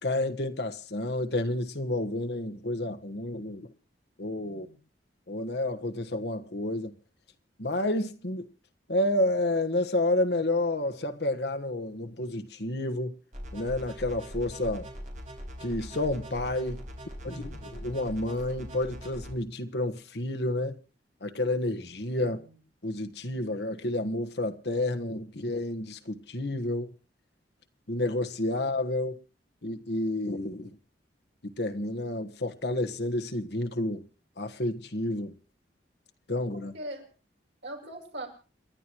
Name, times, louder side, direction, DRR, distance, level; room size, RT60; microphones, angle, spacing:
voice 1, 0.0-3.7 4.2-4.7 5.3-6.9 7.6-8.5 8.9-13.2 13.5-14.9 15.6-16.8 17.2-20.8 21.2-22.4 22.8-26.9 27.9-29.2 29.6-30.7 31.4-34.0 34.4-35.3 36.3-36.7, left 1 dB, 65° left, 1.4 m, -30 dB
voice 2, 4.4-4.8 22.2-22.6 36.5-37.1 37.6-38.3, right 1 dB, 90° right, 7.2 m, -41 dB
sound 1, 13.3-19.3, equal, 45° right, 4.4 m, -41 dB
29.0 x 11.5 x 3.0 m
head